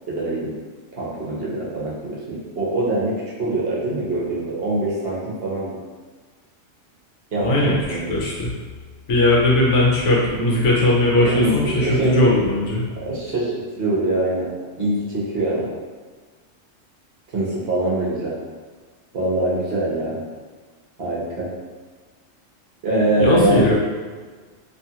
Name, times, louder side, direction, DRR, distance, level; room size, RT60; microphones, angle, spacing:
voice 1, 0.1-0.5 0.9-5.7 7.3-8.1 11.2-12.3 13.0-14.5 14.8-15.7 17.3-18.3 19.1-20.2 21.0-21.5 22.8-23.7, right 1 dB, 55° right, -7 dB, 0.9 m, -23 dB
voice 2, 7.4-8.6 9.1-12.8 23.2-23.7, left 1 dB, 70° left, -5 dB, 1.0 m, -19 dB
2.7 x 2.4 x 2.8 m, 1.4 s
omnidirectional pair, 1.3 m